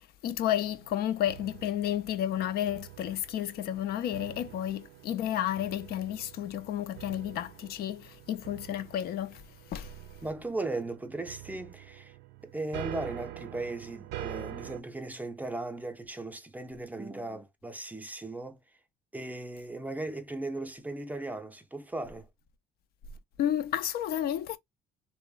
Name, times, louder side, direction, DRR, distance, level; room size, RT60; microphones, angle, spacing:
voice 1, 0.0-9.4 9.7-10.0 23.4-24.6, left 11 dB, 65° left, 0.4 m, -32 dB
sound 1, 0.5-14.8, right 15 dB, 85° right, 0.4 m, -46 dB
voice 2, 10.2-12.1 12.4-18.6 19.1-22.3, right 2 dB, 10° right, 0.5 m, -37 dB
2.9 x 2.1 x 2.3 m
cardioid pair, 110°, 17 cm